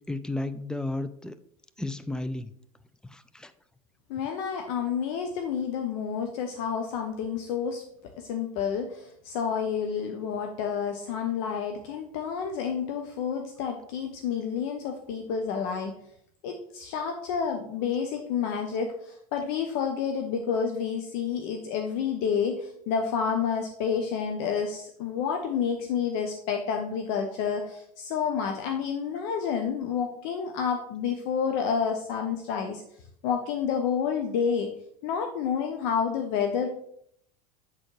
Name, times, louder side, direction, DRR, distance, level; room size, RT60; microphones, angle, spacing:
voice 1, 0.1-1.3 1.8-2.5 3.1-3.5, left 2 dB, 5° left, 12 dB, 0.3 m, -33 dB
voice 2, 4.1-7.8 8.2-15.9 16.4-32.8 33.2-34.7 35.0-36.7, left 7 dB, 55° left, 4 dB, 0.7 m, -29 dB
7.3 x 4.1 x 3.1 m, 0.70 s
figure-of-eight pair, 75°, 19 cm